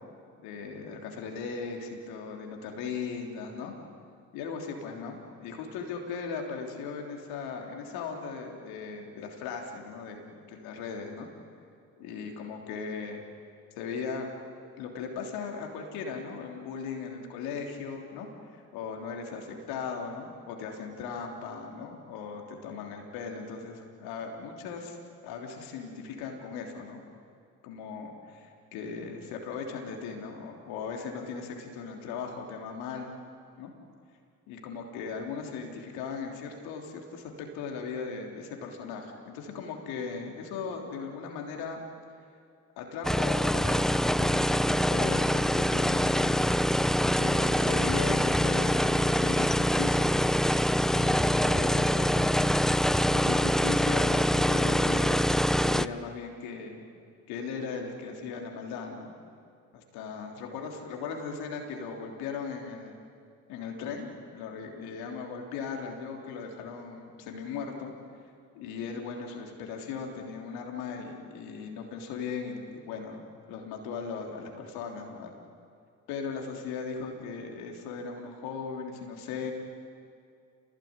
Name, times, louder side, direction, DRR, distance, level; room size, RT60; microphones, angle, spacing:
voice 1, 0.4-3.7 4.3-11.3 12.0-13.2 13.8-14.3 14.8-25.0 25.2-27.0 27.6-33.1 33.6-33.7 34.5-41.8 42.8-46.6 47.0-50.1 50.9-52.5 53.1-55.2 55.6-56.8 57.3-59.1 59.7-63.0 63.5-67.9 68.5-73.2 73.5-75.3 76.1-79.5, left 5 dB, 80° left, 2 dB, 3.4 m, -38 dB
sound 1, 43.0-55.9, equal, ahead, 0.7 m, -25 dB
27.5 x 19.5 x 9.7 m, 2.4 s
hypercardioid pair, 50°, 37 cm